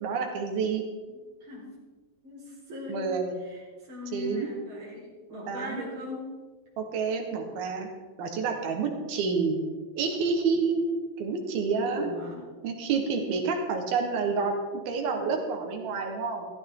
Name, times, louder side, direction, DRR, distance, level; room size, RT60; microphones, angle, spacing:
voice 1, 0.0-0.8 2.9-3.4 4.1-4.5 5.5-5.8 6.8-7.9 8.2-9.6 10.0-10.8 11.2-12.1 12.6-14.6 14.9-16.5, right 5 dB, 75° right, 3 dB, 3.3 m, -28 dB
voice 2, 2.2-3.1 3.4-6.3 11.8-12.4, left 1 dB, 35° right, -5 dB, 5.1 m, -39 dB
15.0 x 14.0 x 3.8 m, 1.4 s
omnidirectional pair, 4.5 m